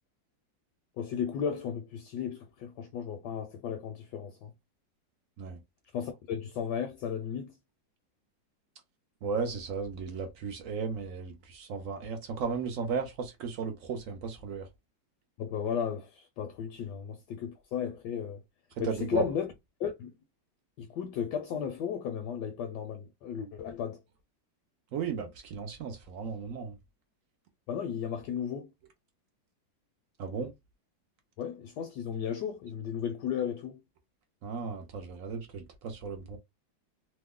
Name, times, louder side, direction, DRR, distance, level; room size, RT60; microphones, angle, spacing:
voice 1, 1.0-4.5 5.9-7.6 15.4-18.4 18.8-19.5 19.8-20.1 20.8-24.0 27.7-28.7 31.4-33.8, left 8 dB, 75° left, 1.1 m, -34 dB
voice 2, 9.2-14.7 18.8-19.2 24.9-26.8 30.2-30.5 34.4-36.4, right 5 dB, 75° right, 0.7 m, -35 dB
3.0 x 2.1 x 3.5 m
omnidirectional pair, 2.0 m